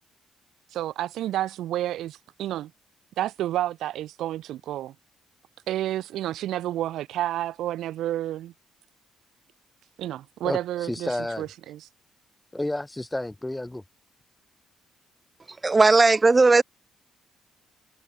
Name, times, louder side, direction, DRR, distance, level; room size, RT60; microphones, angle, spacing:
voice 1, 0.7-2.7 3.2-4.9 5.7-8.5 10.0-11.8, right 13 dB, 80° right, 1.3 m, -30 dB
voice 2, 10.4-11.4 12.5-13.8, left 1 dB, 10° left, 2.9 m, -31 dB
voice 3, 15.6-16.6, right 3 dB, 25° right, 2.4 m, -17 dB
cardioid pair, 90°, 0 cm